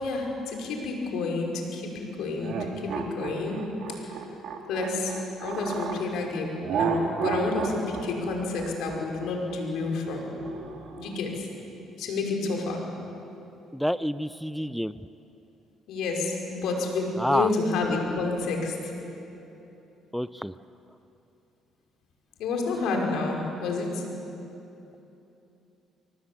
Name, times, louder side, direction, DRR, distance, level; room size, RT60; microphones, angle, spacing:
voice 1, 0.0-4.2 4.7-10.2 11.0-11.5 12.0-12.8 15.9-18.9 22.4-24.0, left 3 dB, 75° left, 1 dB, 5.3 m, -30 dB
sound 1, 2.4-6.0 6.6-11.1, right 6 dB, 65° right, 2.8 m, -32 dB
voice 2, 13.7-14.9 17.2-17.5 20.1-20.5, equal, ahead, 15 dB, 0.5 m, -27 dB
24.0 x 19.0 x 8.7 m, 2.9 s
supercardioid pair, 70°, 0 cm